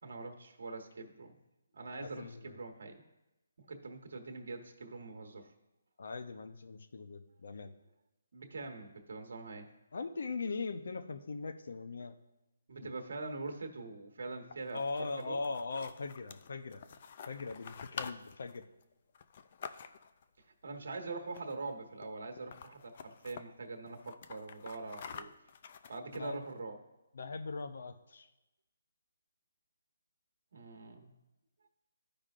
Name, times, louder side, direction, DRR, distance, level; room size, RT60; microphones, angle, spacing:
voice 1, 0.0-1.4 1.7-3.0 3.6-5.5 8.3-9.7 12.7-15.4 20.4-25.3 25.9-26.8 30.5-31.1, right 3 dB, 65° right, 3 dB, 1.2 m, -43 dB
voice 2, 2.0-2.6 6.0-7.7 9.9-12.2 12.8-12.9 14.7-16.8 17.3-18.6 26.1-26.4 27.1-28.3, left 4 dB, 65° left, 9 dB, 0.7 m, -40 dB
sound 1, 14.6-20.2 21.3-21.7 22.0-22.1 22.4-23.4 23.9-26.5, left 7 dB, 40° left, 0.4 m, -48 dB
13.5 x 5.1 x 2.5 m, 0.98 s
hypercardioid pair, 165°, 0 cm